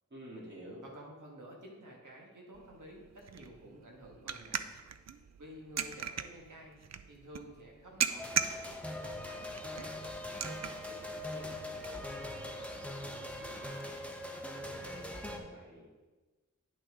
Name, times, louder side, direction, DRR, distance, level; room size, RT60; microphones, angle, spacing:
voice 1, 0.1-0.8 14.7-16.0, right 1 dB, 35° right, -6 dB, 3.0 m, -49 dB
voice 2, 0.8-4.7 5.4-13.8, right 1 dB, 80° right, -1 dB, 1.8 m, -53 dB
sound 1, 2.5-13.8, right 7 dB, 60° right, 0.5 m, -41 dB
sound 2, 8.2-15.4, left 1 dB, 5° left, 1.0 m, -42 dB
9.9 x 6.1 x 3.8 m, 1.2 s
wide cardioid pair, 60°, 30 cm